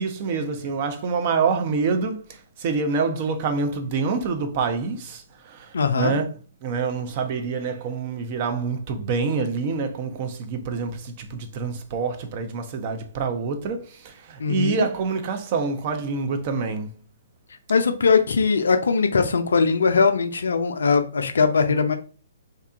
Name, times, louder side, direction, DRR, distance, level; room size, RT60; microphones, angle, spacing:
voice 1, 0.0-2.2 2.6-5.7 6.0-6.2 6.6-16.9, right 4 dB, 40° right, 0.5 m, -26 dB
voice 2, 5.7-6.2 14.4-14.9 17.7-22.0, left 5 dB, 70° left, 0.4 m, -20 dB
2.8 x 2.3 x 2.3 m
figure-of-eight pair, 125°, 0 cm